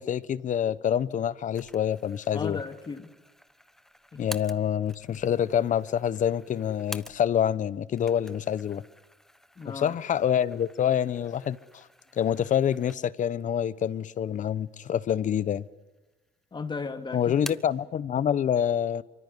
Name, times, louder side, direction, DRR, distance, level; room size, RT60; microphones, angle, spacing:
voice 1, 0.0-2.6 4.2-8.8 9.7-11.8 12.2-15.7 17.1-19.0, left 9 dB, 50° left, 1.0 m, -26 dB
sound 1, 1.5-7.5 7.9-13.3 13.8-13.9 14.7-15.4 15.7-16.4 16.7-17.8, equal, ahead, 1.1 m, -48 dB
voice 2, 2.3-3.1 4.1-4.2 9.6-10.0 16.5-17.4, left 4 dB, 25° left, 2.5 m, -36 dB
24.5 x 24.0 x 9.9 m
cardioid pair, 110°, 17 cm